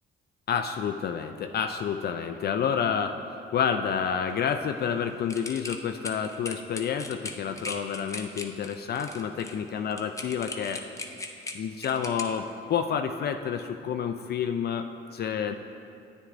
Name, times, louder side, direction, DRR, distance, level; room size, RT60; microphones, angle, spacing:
voice 1, 0.5-10.8 11.5-15.5, left 7 dB, 55° left, 6 dB, 0.4 m, -29 dB
sound 1, 5.3-12.2, left 2 dB, 15° left, 0.6 m, -38 dB
9.8 x 9.2 x 2.5 m, 2.5 s
cardioid pair, 90°, 20 cm